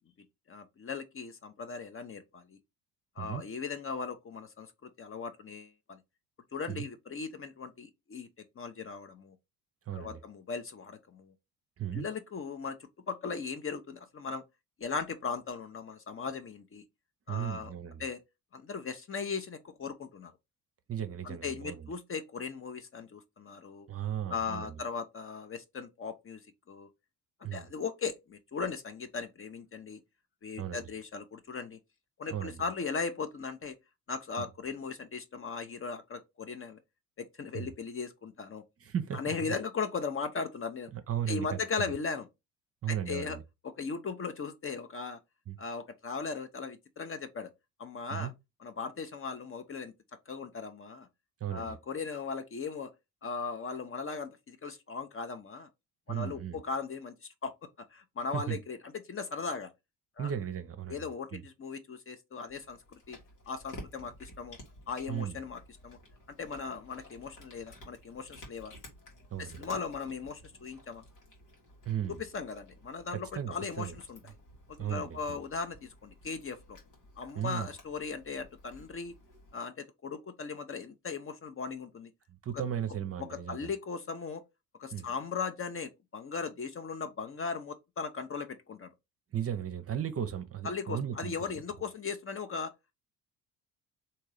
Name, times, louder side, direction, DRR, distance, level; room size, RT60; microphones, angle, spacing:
voice 1, 0.5-2.6 3.2-6.0 6.5-8.3 8.6-9.3 9.9-11.3 11.9-12.8 13.1-14.4 14.8-16.8 17.3-17.7 18.0-18.2 18.5-20.3 21.2-23.9 24.3-26.4 26.7-26.9 27.5-30.0 30.4-31.8 32.2-33.8 34.1-36.8 37.2-38.6 39.1-40.9 41.3-42.3 42.9-43.4 43.6-45.2 45.6-47.5 47.8-48.3 48.6-49.9 50.3-51.1 51.5-52.9 53.2-55.7 56.1-57.1 57.4-59.7 60.2-60.3 60.9-63.2 63.5-64.6 64.9-66.0 66.4-68.7 69.4-71.0 72.3-74.2 74.8-76.6 77.2-79.1 79.5-82.1 83.2-84.4 84.8-88.9 90.6-92.7, left 5 dB, 30° left, 0.7 m, -38 dB
voice 2, 9.9-10.2 11.8-12.1 17.3-18.0 20.9-21.9 23.9-24.8 27.4-27.7 30.6-30.9 32.3-32.6 34.4-34.5 37.5-37.7 38.8-39.5 40.9-41.9 42.8-43.4 45.5-45.6 48.1-48.3 51.4-51.8 56.1-56.6 58.3-58.6 60.2-61.0 61.3-61.4 65.1-65.4 69.3-69.6 71.9-72.2 73.1-73.9 74.8-75.4 77.3-77.7 82.4-83.7 84.9-85.1 89.3-91.4, right 9 dB, 30° right, 0.7 m, -36 dB
Cat, 62.5-79.6, left 1 dB, 80° left, 1.6 m, -53 dB
3.7 x 2.9 x 4.7 m
hypercardioid pair, 50°, 46 cm